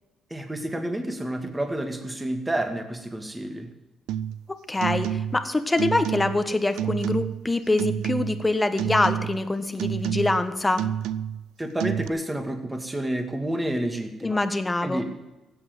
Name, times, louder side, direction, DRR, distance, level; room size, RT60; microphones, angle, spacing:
voice 1, 0.3-3.7 11.6-14.4 14.8-15.1, right 1 dB, 15° right, 5 dB, 2.3 m, -29 dB
sound 1, 4.1-4.4 4.8-5.5 5.8-6.5 6.8-7.4 7.8-8.5 8.8-9.4 9.8-10.5 10.8-11.5 11.8-12.1, right 10 dB, 90° right, 0.4 m, -29 dB
voice 2, 4.5-10.8 14.2-15.0, left 2 dB, 15° left, 10 dB, 1.4 m, -25 dB
16.0 x 8.0 x 7.9 m, 1.1 s
cardioid pair, 90°, 0 cm